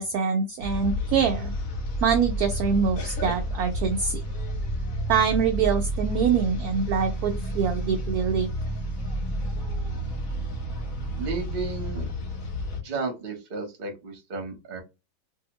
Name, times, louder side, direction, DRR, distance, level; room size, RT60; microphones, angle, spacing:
voice 1, 0.0-1.5 2.0-4.2 5.1-8.5, right 6 dB, 70° right, 5 dB, 0.9 m, -24 dB
sound 1, 0.6-12.8, equal, 55° left, 1.1 m, -30 dB
voice 2, 11.2-12.1 12.8-14.8, right 3 dB, 40° right, 2 dB, 0.9 m, -33 dB
2.7 x 2.7 x 2.8 m, 0.25 s
omnidirectional pair, 1.9 m